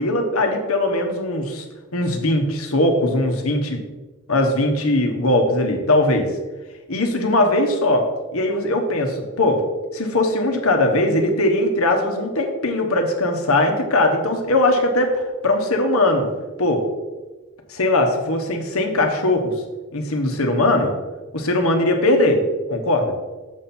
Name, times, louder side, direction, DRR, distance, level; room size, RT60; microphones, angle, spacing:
voice 1, 0.0-1.6 1.9-3.8 4.3-6.3 6.9-8.0 8.3-9.6 9.9-16.3 16.6-16.8 17.7-19.5 19.9-20.9 21.3-22.4 22.7-23.1, left 1 dB, 85° left, 4 dB, 1.2 m, -20 dB
7.3 x 5.5 x 4.4 m, 1.2 s
head